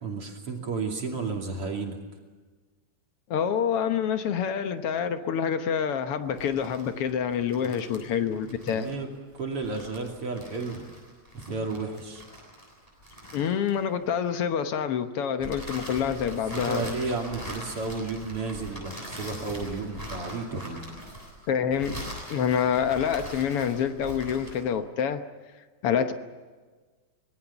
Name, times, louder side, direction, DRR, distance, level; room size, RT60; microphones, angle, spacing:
voice 1, 0.0-2.0 7.6-8.2 8.7-9.1 9.3-10.8 11.3-12.2 16.5-20.8, right 3 dB, 40° right, 2 dB, 3.3 m, -33 dB
voice 2, 3.3-8.9 13.3-16.8 21.5-25.2 25.8-26.1, left 8 dB, 70° left, 8 dB, 1.4 m, -27 dB
sound 1, 6.3-14.1 15.4-24.7, equal, 10° left, 7.7 m, -42 dB
25.5 x 21.0 x 7.1 m, 1.4 s
omnidirectional pair, 4.1 m